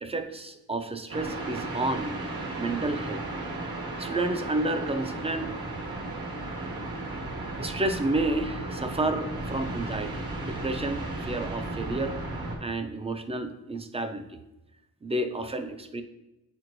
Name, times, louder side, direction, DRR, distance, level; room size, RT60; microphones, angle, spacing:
voice 1, 0.0-2.2 2.6-3.2 4.0-5.5 7.6-12.2 12.6-14.4 15.0-16.0, right 2 dB, 20° right, 8 dB, 0.3 m, -30 dB
sound 1, 1.1-12.6, right 2 dB, 85° right, 1.4 m, -35 dB
9.5 x 4.4 x 2.6 m, 0.96 s
wide cardioid pair, 140°, 36 cm